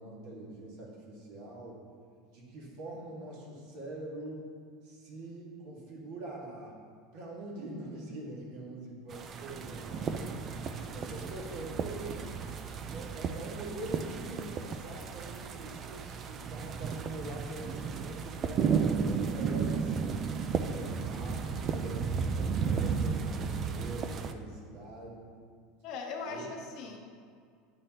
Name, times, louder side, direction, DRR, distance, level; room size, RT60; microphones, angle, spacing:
voice 1, 0.0-1.8 2.3-4.5 4.8-6.8 7.1-10.4 10.9-12.3 12.9-20.0 20.7-25.3 26.3-26.4, right 2 dB, 55° right, -3 dB, 1.8 m, -44 dB
sound 1, 9.1-24.3, right 6 dB, 30° right, 0.3 m, -34 dB
voice 2, 25.8-27.0, left 4 dB, 50° left, 2 dB, 0.9 m, -39 dB
9.9 x 5.0 x 2.9 m, 2.1 s
supercardioid pair, 150°, 0 cm